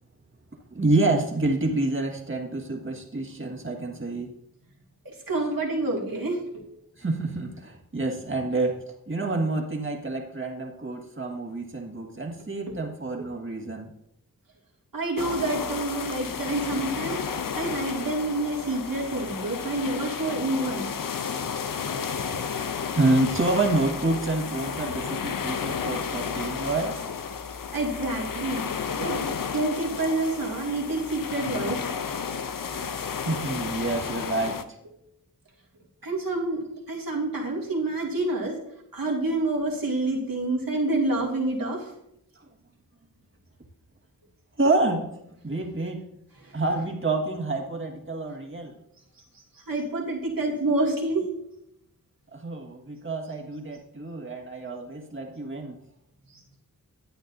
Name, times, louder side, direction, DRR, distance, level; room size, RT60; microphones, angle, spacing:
voice 1, 0.7-4.3 7.0-8.8 9.1-13.9 22.9-27.0 33.2-34.6 42.4-42.5 44.6-45.1 45.4-46.0 46.5-48.7 52.3-55.8, right 2 dB, 35° right, 0 dB, 1.8 m, -28 dB
voice 2, 5.0-6.6 12.7-12.8 14.9-17.2 17.5-20.9 27.7-28.6 29.0-29.3 29.5-31.9 36.0-38.6 38.9-41.9 46.4-46.6 49.5-51.3 56.3-56.6, right 2 dB, 70° right, -2 dB, 2.4 m, -28 dB
sound 1, 15.2-34.6, left 6 dB, 65° left, 0.7 m, -32 dB
11.5 x 8.9 x 2.7 m, 0.78 s
wide cardioid pair, 60°, 35 cm